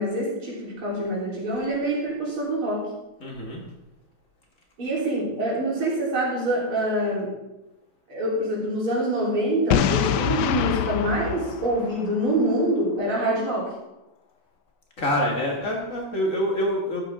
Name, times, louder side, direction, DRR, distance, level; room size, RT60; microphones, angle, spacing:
voice 1, 0.0-2.8 4.8-7.3 8.1-13.7, right 1 dB, 80° right, -6 dB, 4.7 m, -25 dB
voice 2, 3.2-3.6 15.0-17.0, equal, 40° left, -1 dB, 1.9 m, -26 dB
Boom, 9.7-12.6, left 10 dB, 75° left, 0.9 m, -25 dB
12.5 x 8.9 x 3.7 m, 0.96 s
omnidirectional pair, 2.3 m